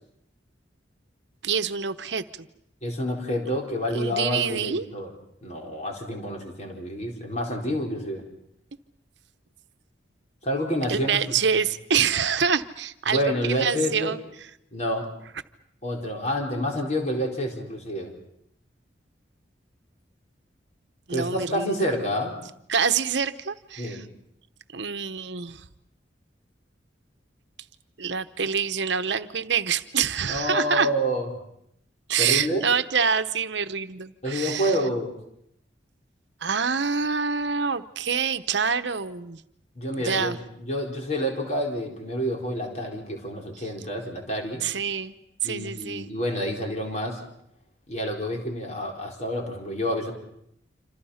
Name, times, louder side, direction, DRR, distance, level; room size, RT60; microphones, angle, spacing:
voice 1, 1.4-2.5 3.9-4.8 10.9-14.5 21.1-21.9 22.7-24.0 24.7-25.6 28.0-30.9 32.1-34.8 36.4-39.4 40.0-40.4 44.6-45.1 45.4-46.1, right 6 dB, 70° right, 10 dB, 1.0 m, -26 dB
voice 2, 2.8-5.1 5.4-8.2 10.4-11.6 13.1-14.2 14.7-15.1 15.8-18.1 21.1-22.4 23.8-24.0 30.3-31.3 32.2-32.6 34.2-35.1 39.8-44.6 45.4-47.2 47.9-50.1, equal, 40° left, 0 dB, 4.6 m, -28 dB
27.0 x 27.0 x 5.8 m, 0.75 s
head